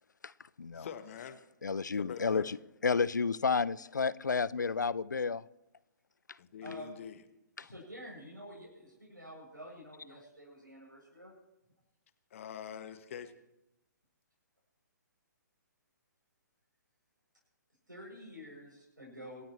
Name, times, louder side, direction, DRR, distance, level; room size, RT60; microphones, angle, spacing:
voice 1, 0.7-1.4 1.9-2.5 6.4-7.2 12.3-13.3, left 8 dB, 45° left, 1.2 m, -44 dB
voice 2, 1.6-2.6 2.8-5.4 6.7-6.8 7.6-7.7, left 5 dB, 70° left, 0.6 m, -31 dB
voice 3, 6.6-6.9 7.6-11.3 17.9-19.4, equal, 90° right, 7.6 m, -49 dB
27.0 x 13.5 x 3.2 m
figure-of-eight pair, 125°, 10 cm